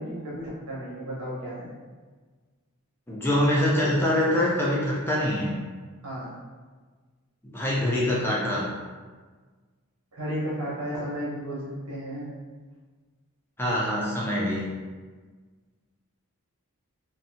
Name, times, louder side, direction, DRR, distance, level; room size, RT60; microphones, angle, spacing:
voice 1, 0.0-1.7 6.0-6.4 10.1-12.3, equal, 80° right, -7 dB, 0.9 m, -33 dB
voice 2, 3.1-5.6 7.4-8.7 13.6-14.7, left 1 dB, 10° left, -5 dB, 0.4 m, -24 dB
2.6 x 2.0 x 2.7 m, 1.4 s
head